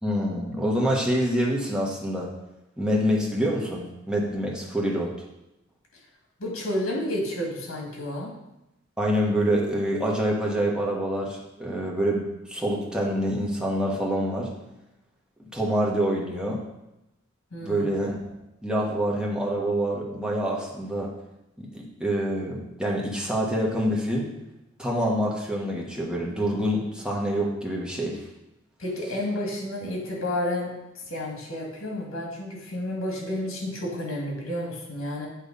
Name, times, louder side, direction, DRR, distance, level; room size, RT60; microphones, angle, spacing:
voice 1, 0.0-2.3 2.8-5.1 9.0-14.5 15.4-16.6 17.6-18.2 18.6-21.1 21.6-24.3 24.8-28.2, equal, 5° right, -3 dB, 1.3 m, -26 dB
voice 2, 6.4-8.3 17.5-17.9 28.8-30.7 31.1-35.3, left 1 dB, 75° left, -1 dB, 2.1 m, -31 dB
8.4 x 3.3 x 5.3 m, 0.92 s
head